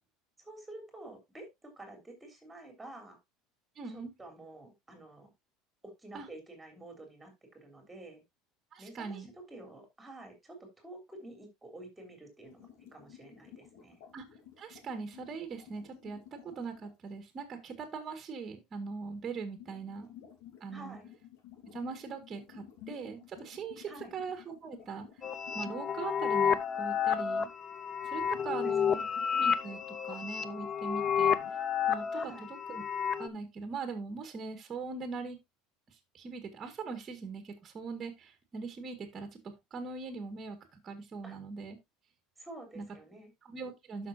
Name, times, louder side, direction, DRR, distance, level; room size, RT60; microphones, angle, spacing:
voice 1, 0.4-3.2 3.9-5.3 5.8-8.2 8.8-14.0 20.7-21.1 23.9-24.1 28.4-29.0 32.1-32.5 41.2-41.4 42.4-43.3, right 2 dB, 10° right, 5 dB, 3.3 m, -49 dB
voice 2, 3.8-4.1 6.1-6.3 8.7-9.3 14.1-14.2 14.6-20.1 20.6-21.0 21.7-25.1 25.5-27.5 28.0-29.1 29.3-31.3 31.9-32.2 32.7-32.8 33.2-35.4 36.1-41.8 42.8-42.9 43.5-44.1, right 4 dB, 25° right, 7 dB, 1.9 m, -41 dB
sound 1, 12.4-16.9 19.2-26.8 27.0-28.7 29.1-31.6, left 9 dB, 75° left, 3.1 m, -54 dB
sound 2, 25.2-33.3, left 7 dB, 25° left, 0.7 m, -31 dB
12.0 x 6.1 x 2.7 m, 0.20 s
cardioid pair, 145°, 0 cm